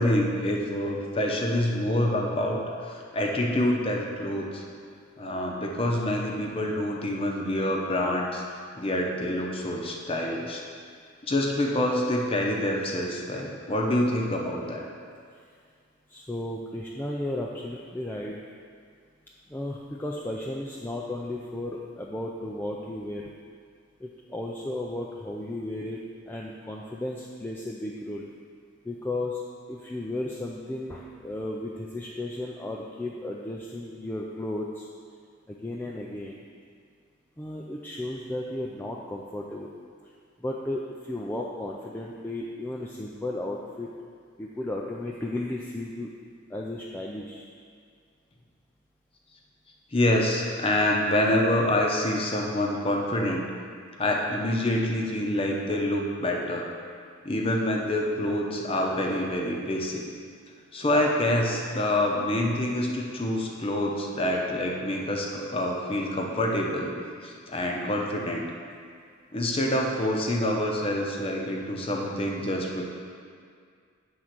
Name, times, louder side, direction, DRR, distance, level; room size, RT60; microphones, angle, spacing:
voice 1, 0.0-4.6 5.2-8.4 8.8-10.6 11.2-14.8 49.9-53.4 54.0-56.7 57.2-60.0 60.7-66.9 67.2-68.4 69.3-72.9, left 1 dB, 25° left, 0 dB, 0.7 m, -26 dB
voice 2, 16.1-18.4 19.5-23.2 24.0-26.0 26.3-28.3 28.8-29.4 29.7-34.9 35.5-36.4 37.4-39.7 40.4-43.9 44.4-46.1 46.5-47.5, left 1 dB, 10° left, -3 dB, 0.3 m, -34 dB
8.0 x 3.7 x 5.9 m, 2.2 s
head